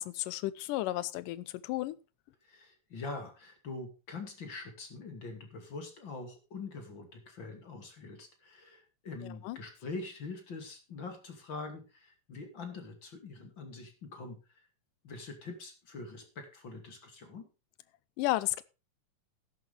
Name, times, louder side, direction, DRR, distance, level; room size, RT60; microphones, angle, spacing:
voice 1, 0.0-2.0 9.4-9.6 18.2-18.6, left 16 dB, 80° left, 2.3 m, -33 dB
voice 2, 2.4-14.4 15.0-17.5, left 3 dB, 35° left, 2.8 m, -44 dB
13.0 x 11.0 x 3.4 m
omnidirectional pair, 3.8 m